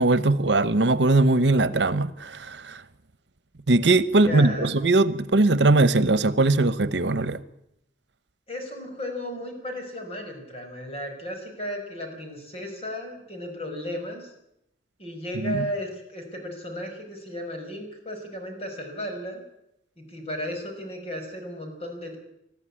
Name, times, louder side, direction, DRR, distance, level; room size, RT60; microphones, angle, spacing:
voice 1, 0.0-2.8 3.7-7.4 15.4-15.6, right 2 dB, 85° right, 1.0 m, -20 dB
voice 2, 4.1-4.7 8.5-14.3 15.0-19.4 20.0-22.2, equal, 35° left, 5.7 m, -35 dB
20.5 x 13.0 x 10.0 m
head